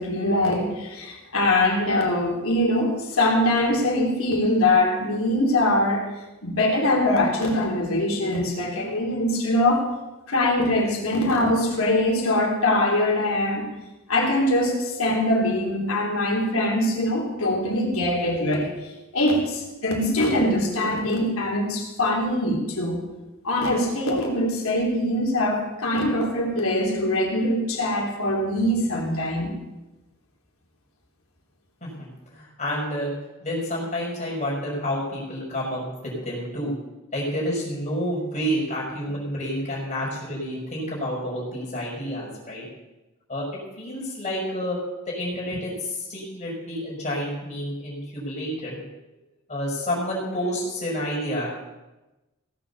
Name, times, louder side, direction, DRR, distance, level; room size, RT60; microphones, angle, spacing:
voice 1, 0.0-6.1 6.4-9.9 10.3-13.7 14.1-23.0 23.4-29.5, left 1 dB, 80° left, -1 dB, 3.5 m, -23 dB
voice 2, 32.3-33.1 33.4-36.7 37.1-42.7 43.3-43.4 43.8-44.8 45.1-48.8 49.5-51.5, equal, 35° left, -4 dB, 5.8 m, -29 dB
17.0 x 7.8 x 7.0 m, 1.1 s
head